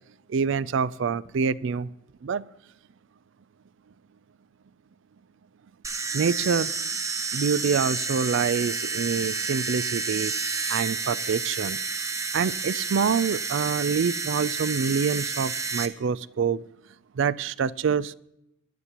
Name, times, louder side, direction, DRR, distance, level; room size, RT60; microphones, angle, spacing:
voice 1, 0.3-1.9 2.2-2.4 6.1-6.7 7.3-10.3 10.7-11.8 12.3-16.6 17.2-18.2, right 6 dB, 60° right, 19 dB, 0.4 m, -26 dB
sound 1, 5.8-15.9, right 4 dB, 15° right, 0.6 m, -30 dB
18.0 x 11.0 x 2.9 m, 0.83 s
head